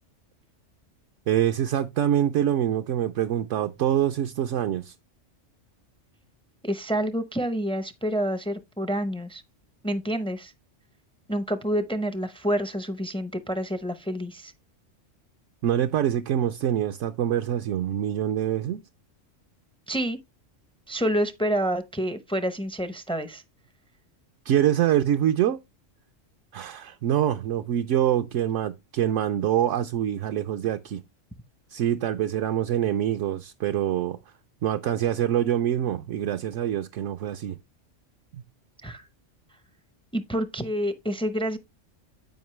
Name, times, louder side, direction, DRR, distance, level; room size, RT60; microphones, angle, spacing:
voice 1, 1.3-4.9 15.6-18.8 24.5-25.6 26.5-31.0 31.7-34.2 34.6-37.6 38.3-38.4, right 11 dB, 75° right, 0.9 m, -25 dB
voice 2, 6.6-9.4 9.8-10.5 11.3-14.5 19.9-20.2 20.9-23.4 38.8-39.0 40.1-41.6, equal, 5° left, 0.4 m, -28 dB
9.3 x 5.2 x 3.1 m
omnidirectional pair, 1.3 m